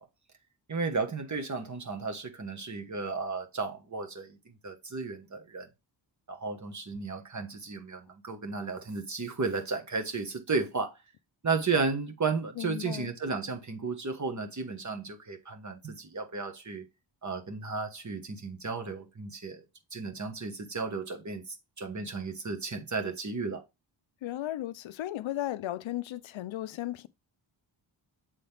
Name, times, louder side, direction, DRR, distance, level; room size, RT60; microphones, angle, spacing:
voice 1, 0.7-4.4 4.6-5.7 6.3-10.9 11.4-16.8 17.2-19.6 19.9-23.6, right 4 dB, 40° right, 1.3 m, -34 dB
voice 2, 12.6-13.1 24.2-27.1, left 13 dB, 80° left, 0.6 m, -35 dB
7.4 x 3.8 x 3.4 m
cardioid pair, 80°, 46 cm